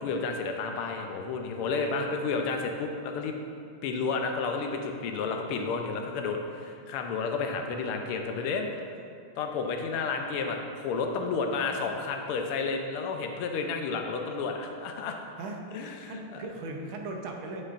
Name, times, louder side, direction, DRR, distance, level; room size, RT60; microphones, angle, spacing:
voice 1, 0.0-3.3 3.8-8.7 9.4-15.2 15.7-16.4, left 4 dB, 85° left, 4 dB, 1.6 m, -31 dB
voice 2, 1.7-2.1 15.4-15.6 16.0-17.6, right 2 dB, 75° right, 2 dB, 1.5 m, -38 dB
9.3 x 6.4 x 2.5 m, 2.3 s
omnidirectional pair, 2.4 m